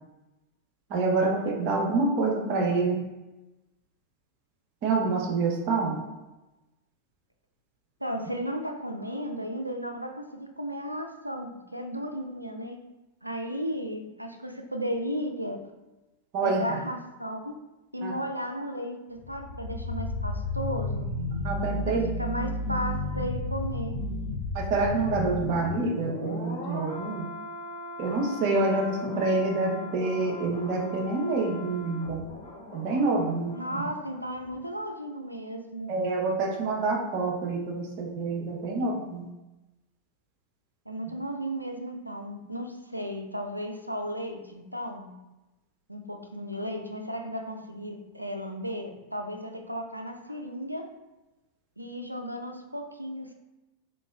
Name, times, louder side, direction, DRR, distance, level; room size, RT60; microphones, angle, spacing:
voice 1, 0.9-3.0 4.8-6.0 16.3-16.8 18.0-18.2 21.4-22.1 24.5-27.3 28.0-32.2 32.7-33.8 35.9-39.3, right 3 dB, 45° right, 0 dB, 0.8 m, -27 dB
voice 2, 8.0-12.8 13.2-15.6 16.4-17.5 17.9-21.1 21.9-24.1 33.5-36.0 40.9-45.1 45.9-50.9 51.8-53.3, equal, 90° right, 5 dB, 0.4 m, -34 dB
sound 1, 19.1-34.1 34.4-34.6, left 2 dB, 65° left, 1.0 m, -35 dB
3.7 x 3.0 x 2.3 m, 1.0 s
figure-of-eight pair, 90°, 0 cm